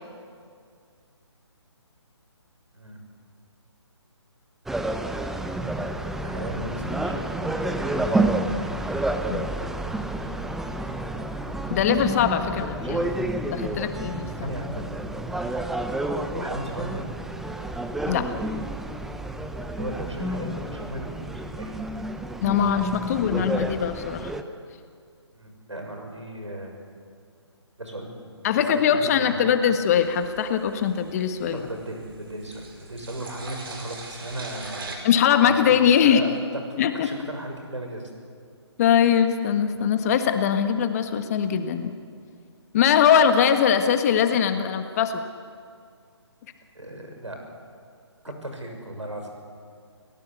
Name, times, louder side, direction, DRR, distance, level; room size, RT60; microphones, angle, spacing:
voice 1, 2.7-3.0 6.2-8.2 8.6-8.9 12.8-13.2 14.4-14.9 16.3-17.1 19.7-21.3 21.6-21.9 25.3-26.8 27.8-28.3 28.7-29.5 31.5-35.0 35.4-35.8 36.0-36.3 36.7-38.1 46.7-47.4 48.2-49.3, right 1 dB, 85° right, 3 dB, 6.6 m, -36 dB
sound 1, 4.7-24.4, right 1 dB, ahead, 0.7 m, -29 dB
voice 2, 11.7-14.3 18.1-18.3 22.4-24.3 28.4-31.6 35.0-36.2 36.8-37.1 38.8-41.9 42.7-45.2, left 8 dB, 35° left, 8 dB, 1.6 m, -21 dB
sound 2, 29.9-35.0, right 3 dB, 50° right, 5.1 m, -42 dB
29.5 x 17.5 x 8.4 m, 2.2 s
figure-of-eight pair, 140°, 15 cm